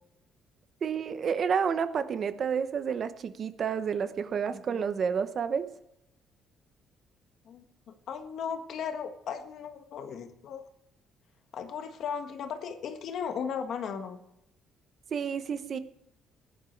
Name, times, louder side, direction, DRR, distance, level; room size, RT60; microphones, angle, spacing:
voice 1, 0.8-5.7 15.1-15.8, right 6 dB, 40° right, 11 dB, 0.9 m, -30 dB
voice 2, 7.4-10.6 11.5-14.2, left 7 dB, 55° left, 7 dB, 1.6 m, -36 dB
16.5 x 11.0 x 4.6 m, 0.84 s
cardioid pair, 155°, 0 cm